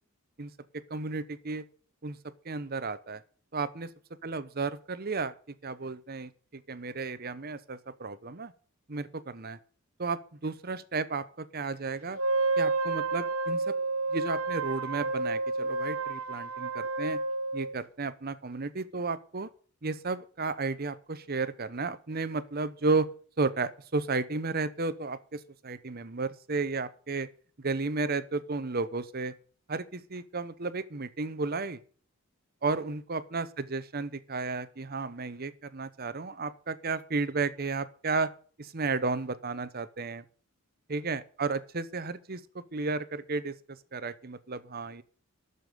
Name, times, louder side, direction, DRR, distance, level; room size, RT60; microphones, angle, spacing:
voice 1, 0.4-1.6 2.0-2.2 2.4-3.2 3.5-3.9 4.2-5.3 5.6-8.5 8.9-9.6 10.0-12.2 12.6-13.7 14.1-17.2 17.5-19.5 19.8-23.1 23.4-27.3 27.6-29.3 29.7-31.8 32.6-38.3 38.6-40.2 40.9-45.0, right 3 dB, 45° right, 14 dB, 0.9 m, -33 dB
Wind instrument woodwind instrument, 12.1-17.8, right 3 dB, 70° right, 1.1 m, -30 dB
13.0 x 6.9 x 6.8 m, 0.42 s
head